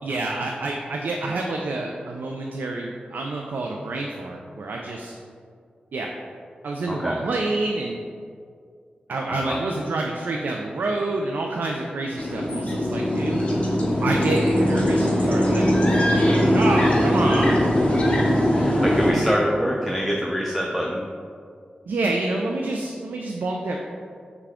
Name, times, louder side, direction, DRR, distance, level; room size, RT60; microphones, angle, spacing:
voice 1, 0.0-5.2 5.9-6.1 6.6-8.0 9.1-13.4 14.0-17.6 19.1-19.3 21.9-23.8, right 2 dB, 85° right, 0 dB, 0.3 m, -28 dB
voice 2, 6.9-7.2 9.3-9.6 18.1-21.0, equal, ahead, -2 dB, 0.4 m, -26 dB
sound 1, 12.2-19.1, equal, 40° left, 0.8 m, -20 dB
5.8 x 2.2 x 3.5 m, 2.2 s
wide cardioid pair, 80°, 3 cm